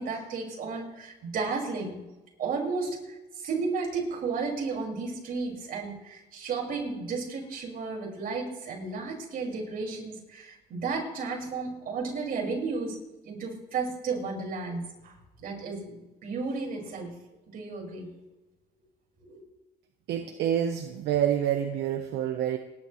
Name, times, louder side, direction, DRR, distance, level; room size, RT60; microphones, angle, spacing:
voice 1, 0.0-2.0 2.4-13.0 13.2-15.1 15.4-17.1 17.5-18.1 19.2-19.4, right 4 dB, 60° right, 0 dB, 5.6 m, -33 dB
voice 2, 20.1-22.6, right 10 dB, 80° right, 5 dB, 1.1 m, -27 dB
30.0 x 11.0 x 3.2 m, 1.1 s
cardioid pair, 110°, 17 cm